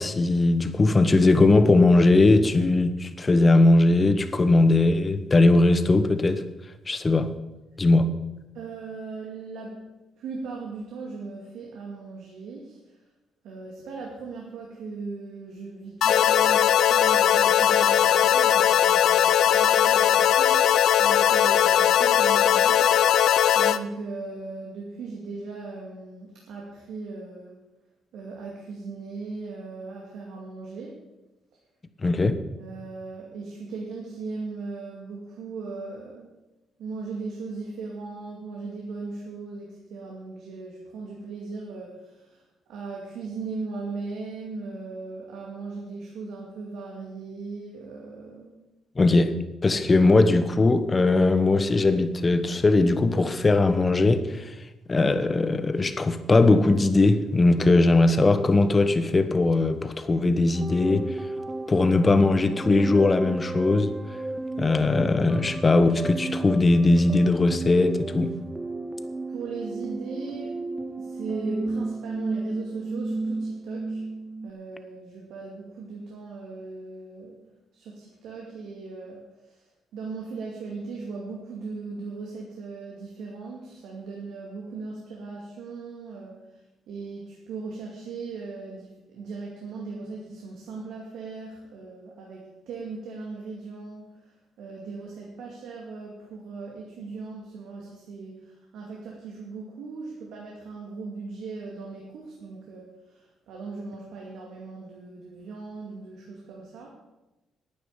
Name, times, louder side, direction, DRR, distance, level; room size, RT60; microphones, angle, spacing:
voice 1, 0.0-6.4 6.9-7.3 7.8-8.1 32.0-32.4 49.0-49.3 49.6-54.5 54.9-61.1 61.7-63.9 64.6-68.3, left 2 dB, 30° left, 11 dB, 1.1 m, -20 dB
voice 2, 8.5-9.8 10.2-12.8 13.4-23.2 23.5-27.6 28.1-31.0 32.2-36.3 36.8-42.4 42.7-48.5 69.3-70.6 70.9-74.0 74.4-77.4 77.7-79.7 79.9-106.9, right 4 dB, 85° right, -2 dB, 2.2 m, -38 dB
sound 1, 16.0-23.8, left 10 dB, 75° left, 0.5 m, -19 dB
sound 2, 60.5-74.5, right 2 dB, 15° right, 0.6 m, -33 dB
10.0 x 9.3 x 7.2 m, 1.0 s
cardioid pair, 90°, 0 cm